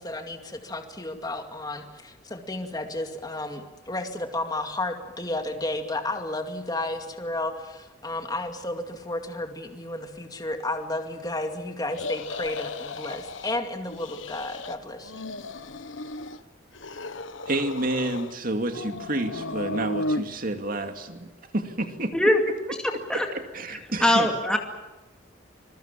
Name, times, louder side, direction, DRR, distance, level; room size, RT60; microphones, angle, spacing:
voice 1, 0.0-15.1, left 2 dB, 20° left, 5 dB, 2.3 m, -32 dB
sound 1, 11.9-13.6 13.9-14.8 15.0-16.4 16.7-18.4 18.7-20.2, left 2 dB, 80° left, 1.3 m, -34 dB
voice 2, 17.5-21.3 21.5-22.1 23.1-24.3, right 1 dB, 45° right, 6 dB, 2.5 m, -29 dB
voice 3, 24.0-24.6, left 1 dB, 5° left, 2 dB, 2.3 m, -20 dB
26.0 x 22.0 x 7.5 m, 1.1 s
head